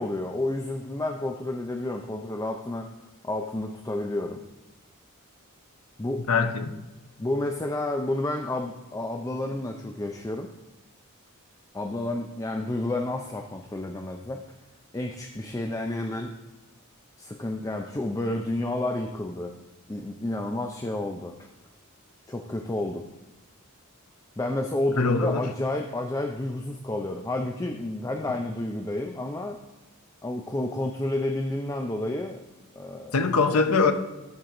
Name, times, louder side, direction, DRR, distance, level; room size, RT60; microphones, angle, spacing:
voice 1, 0.0-2.9 3.2-4.4 6.0-6.5 7.2-10.5 11.7-14.4 14.9-16.3 17.2-19.5 19.9-21.4 22.3-23.0 24.4-29.6 30.2-32.4 32.7-33.2, left 1 dB, 15° left, 3 dB, 0.5 m, -30 dB
voice 2, 6.3-6.7 25.0-25.4 33.1-33.9, left 4 dB, 80° left, 8 dB, 0.8 m, -22 dB
12.5 x 4.6 x 3.7 m, 1.1 s
head